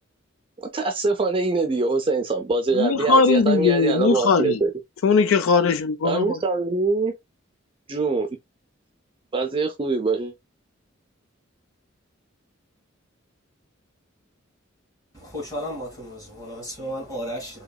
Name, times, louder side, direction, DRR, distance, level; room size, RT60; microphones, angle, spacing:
voice 1, 0.6-4.7 6.0-7.1 7.9-8.3 9.3-10.3, right 3 dB, 25° right, 0.5 m, -23 dB
voice 2, 2.7-4.6 5.0-6.4, left 4 dB, 80° left, 0.4 m, -19 dB
voice 3, 15.1-17.6, equal, 20° left, 2.3 m, -33 dB
3.8 x 2.8 x 2.2 m
head